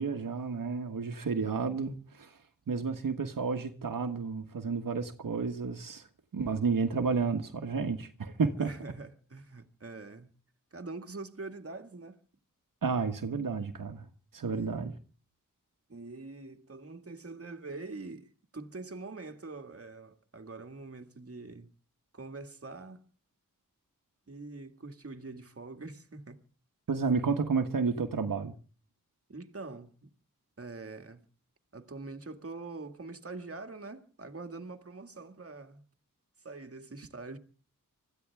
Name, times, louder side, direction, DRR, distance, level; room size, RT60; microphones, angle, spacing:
voice 1, 0.0-2.4 2.7-6.1 6.3-8.7 12.8-14.0 14.3-15.0 26.9-28.5, right 5 dB, 80° right, 1.5 m, -31 dB
voice 2, 8.6-10.3 10.7-12.2 14.5-14.8 15.9-21.7 22.1-23.0 24.3-26.4 29.3-30.1 30.6-31.3 31.7-35.8 36.4-37.4, right 3 dB, 45° right, 2.0 m, -44 dB
25.0 x 14.5 x 3.5 m
wide cardioid pair, 85°, 33 cm